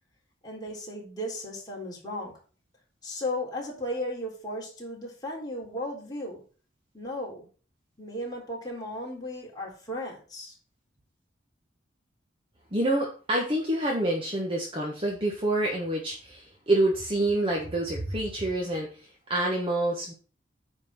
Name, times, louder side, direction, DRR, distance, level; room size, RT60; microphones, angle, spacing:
voice 1, 0.4-2.3 3.0-6.4 6.9-7.5 8.0-10.6, left 1 dB, 20° left, -3 dB, 3.7 m, -35 dB
voice 2, 12.7-18.9 19.3-20.1, right 1 dB, 30° right, -1 dB, 1.5 m, -27 dB
9.5 x 4.4 x 5.8 m, 0.38 s
head